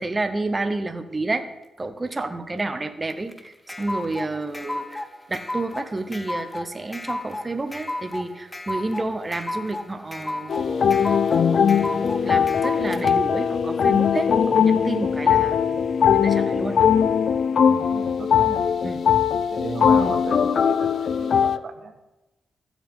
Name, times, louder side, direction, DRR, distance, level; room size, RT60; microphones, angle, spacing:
voice 1, 0.0-1.4 1.8-15.8 16.2-16.8 18.8-19.0 20.0-20.1, right 2 dB, 25° right, 8 dB, 0.9 m, -30 dB
sound 1, 3.1-13.1, left 1 dB, 15° left, 0.8 m, -33 dB
sound 2, 10.5-21.6, left 7 dB, 65° left, 0.4 m, -20 dB
Wind instrument woodwind instrument, 10.6-17.4, left 3 dB, 35° left, 1.2 m, -32 dB
voice 2, 17.6-18.6 19.5-21.9, right 5 dB, 65° right, 7 dB, 1.3 m, -35 dB
14.5 x 7.3 x 3.8 m, 1.0 s
cardioid pair, 80°, 0 cm